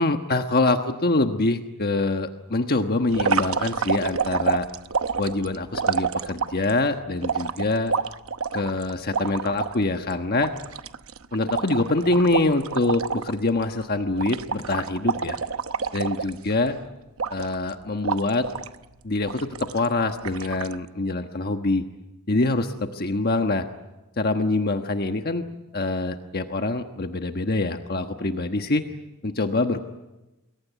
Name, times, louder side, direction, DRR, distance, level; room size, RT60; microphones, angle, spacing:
voice 1, 0.0-4.7 5.2-7.9 8.5-10.5 11.3-15.4 15.9-16.8 17.3-18.5 19.0-21.8 22.3-23.6 24.2-25.4 25.7-28.8 29.2-29.8, left 2 dB, 45° left, 6 dB, 1.3 m, -25 dB
sound 1, 3.1-6.7 7.2-9.7 10.1-10.2 10.4-13.3 13.6-13.8 14.2-16.7 17.2-17.7 18.0-18.7 19.3-19.9 20.2-20.7, right 6 dB, 70° right, 0.9 m, -28 dB
28.0 x 22.5 x 9.4 m, 1.0 s
head